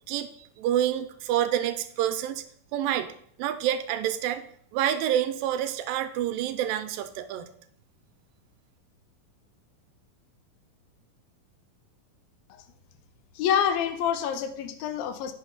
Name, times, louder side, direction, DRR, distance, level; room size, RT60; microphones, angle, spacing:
voice 1, 0.1-2.4 2.7-3.1 3.4-4.4 4.7-7.5, right 11 dB, 85° right, 9 dB, 2.2 m, -28 dB
voice 2, 13.4-15.3, left 8 dB, 85° left, 9 dB, 2.6 m, -27 dB
9.7 x 6.1 x 3.9 m, 0.63 s
omnidirectional pair, 4.1 m